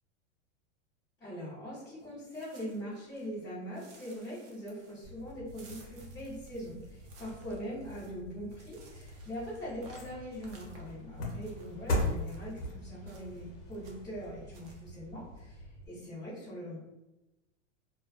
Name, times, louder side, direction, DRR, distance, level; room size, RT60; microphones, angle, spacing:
voice 1, 1.2-16.8, equal, 10° left, -14 dB, 0.5 m, -42 dB
sound 1, 2.0-3.4 3.7-12.6 13.1-13.5 13.7-14.2 14.5-14.8, right 3 dB, 50° right, 0.6 m, -59 dB
Fire, 5.0-15.9, left 1 dB, 85° right, 0.9 m, -51 dB
sound 2, 8.9-15.4 15.8-15.9, left 1 dB, 60° left, 0.9 m, -38 dB
2.3 x 2.3 x 2.4 m, 0.99 s
supercardioid pair, 165°, 37 cm